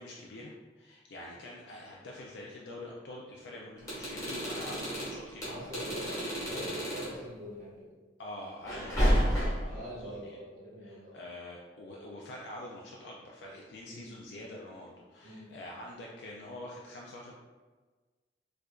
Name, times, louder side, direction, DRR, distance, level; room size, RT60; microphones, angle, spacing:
voice 1, 0.0-5.6 6.1-6.3 8.2-10.4 10.8-17.3, left 1 dB, 80° left, -3 dB, 0.4 m, -46 dB
sound 1, 3.8-7.2 8.7-9.8, equal, 20° left, 1.4 m, -31 dB
voice 2, 5.4-7.9 8.8-9.0 9.7-11.2 13.8-14.1 15.2-15.5, equal, 50° right, -6 dB, 0.6 m, -44 dB
4.6 x 2.5 x 2.3 m, 1.3 s
head